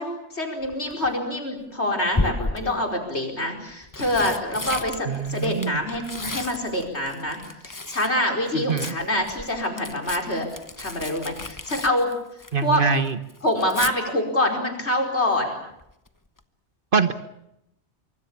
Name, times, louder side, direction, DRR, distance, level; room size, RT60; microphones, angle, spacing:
voice 1, 0.0-7.4 7.6-10.5 10.8-12.1 12.6-12.8 13.4-15.6, left 1 dB, 70° left, 2 dB, 5.1 m, -25 dB
Tearing, 0.6-1.1 2.1-2.9 3.7-8.2 8.5-12.8 13.1-13.9 15.8-16.1 16.4-16.5, left 2 dB, 20° left, 1.0 m, -33 dB
voice 2, 5.1-5.8 8.5-8.9 12.5-13.2 16.9-17.1, right 5 dB, 50° right, 10 dB, 1.4 m, -23 dB
24.5 x 24.5 x 7.2 m, 0.81 s
omnidirectional pair, 1.2 m